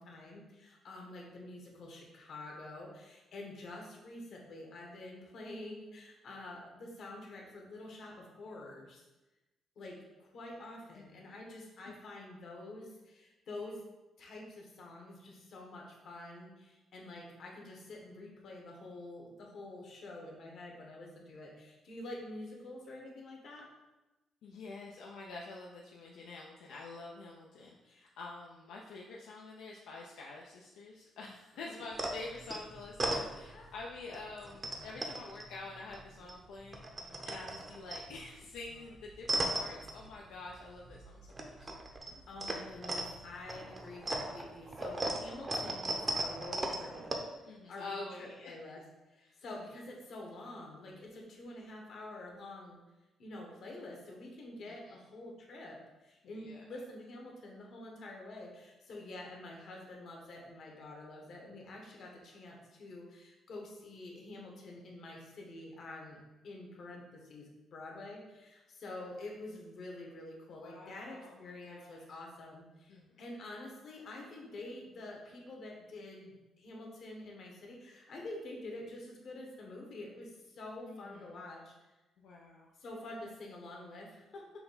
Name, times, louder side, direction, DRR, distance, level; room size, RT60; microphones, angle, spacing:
voice 1, 0.0-9.0 9.8-13.8 14.2-23.7 33.5-33.7 42.3-47.0 47.7-48.8 49.1-52.8 53.2-81.7 82.8-84.6, left 2 dB, 65° left, -1 dB, 1.1 m, -47 dB
voice 2, 11.0-11.4 11.8-11.9 24.4-41.7 47.4-48.5 49.2-49.6 54.7-54.9 56.3-56.6 70.6-72.2 72.9-73.2 80.8-81.4 82.2-82.7, left 3 dB, 85° left, -3 dB, 0.5 m, -48 dB
sound 1, 31.9-33.8 34.1-36.3 36.6-40.6 40.9-47.2, right 2 dB, 30° right, 0.6 m, -38 dB
5.7 x 2.2 x 4.0 m, 1.0 s
cardioid pair, 90°, 0 cm